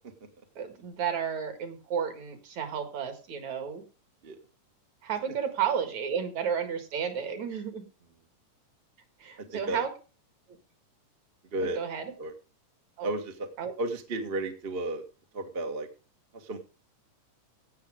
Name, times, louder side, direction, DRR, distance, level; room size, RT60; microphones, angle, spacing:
voice 1, 0.6-3.8 5.0-7.8 9.2-9.9 11.7-12.1 13.0-13.1 13.6-13.7, right 8 dB, 60° right, 7 dB, 3.0 m, -32 dB
voice 2, 9.5-9.9 11.5-11.8 12.2-12.3 13.0-13.5 13.8-15.0 15.3-15.9 16.3-16.6, right 2 dB, 35° right, 4 dB, 0.9 m, -33 dB
16.5 x 6.7 x 5.0 m, 0.34 s
omnidirectional pair, 3.8 m